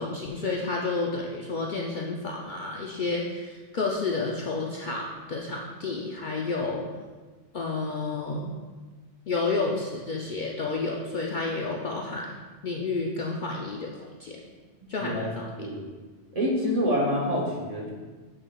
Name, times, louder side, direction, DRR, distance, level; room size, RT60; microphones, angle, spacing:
voice 1, 0.0-6.9 7.5-8.5 9.3-12.3 12.6-13.9 14.2-14.4 14.9-15.5, left 3 dB, 55° left, -1 dB, 0.6 m, -30 dB
voice 2, 15.0-15.9 16.3-17.9, equal, 35° right, -3 dB, 1.0 m, -27 dB
7.3 x 6.4 x 2.3 m, 1.4 s
omnidirectional pair, 1.2 m